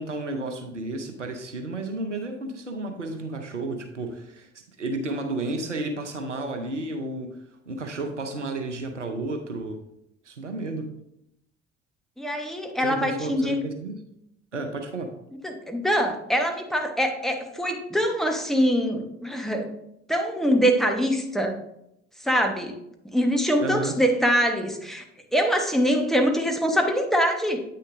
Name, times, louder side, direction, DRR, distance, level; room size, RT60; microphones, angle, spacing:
voice 1, 0.0-4.5 4.8-7.4 7.7-9.8 10.2-10.9 12.8-14.0 14.5-15.1 23.6-24.0, right 2 dB, 90° right, 6 dB, 0.6 m, -32 dB
voice 2, 12.2-13.6 15.4-19.7 20.1-21.6 22.2-22.8 23.0-25.0 25.3-27.6, equal, ahead, 3 dB, 1.2 m, -24 dB
8.5 x 6.3 x 2.6 m, 0.80 s
figure-of-eight pair, 50°, 35 cm